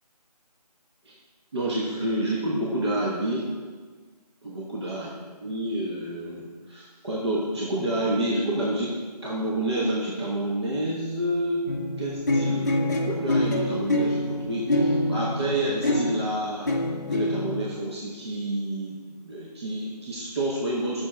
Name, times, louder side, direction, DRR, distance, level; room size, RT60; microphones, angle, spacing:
voice 1, 1.5-3.5 4.4-5.1 5.4-8.9 9.2-11.7 12.0-16.7 17.1-21.1, right 1 dB, 40° right, -4 dB, 1.1 m, -29 dB
sound 1, 11.7-16.3 16.7-17.7, left 1 dB, 25° left, 0.7 m, -25 dB
8.1 x 6.3 x 4.4 m, 1.5 s
figure-of-eight pair, 170°, 21 cm